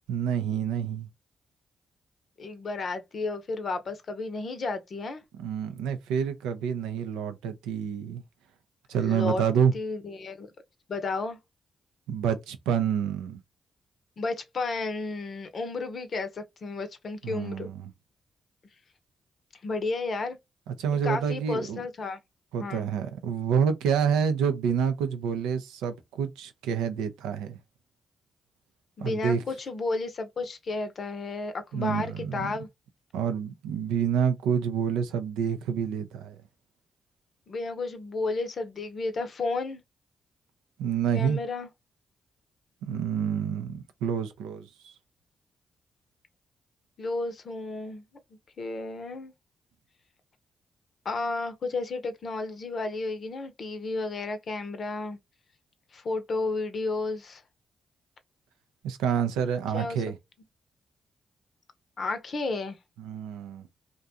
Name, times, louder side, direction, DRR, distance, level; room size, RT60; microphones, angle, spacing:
voice 1, 0.1-1.1 5.4-8.2 8.9-9.7 12.1-13.4 17.2-17.7 20.7-21.8 22.5-27.6 29.0-29.4 31.7-32.5 33.1-36.4 40.8-41.4 42.8-44.9 58.8-60.2 63.0-63.6, right 7 dB, 85° right, 0.3 m, -28 dB
voice 2, 2.4-5.2 9.0-9.4 9.7-10.5 10.9-11.4 14.2-17.7 19.6-20.4 21.0-22.2 22.6-22.9 29.0-32.7 37.5-39.8 41.1-41.7 47.0-48.0 48.6-49.3 51.0-55.2 55.9-57.4 59.7-60.0 62.0-62.8, left 3 dB, 60° left, 0.6 m, -32 dB
2.5 x 2.2 x 2.7 m
hypercardioid pair, 45°, 0 cm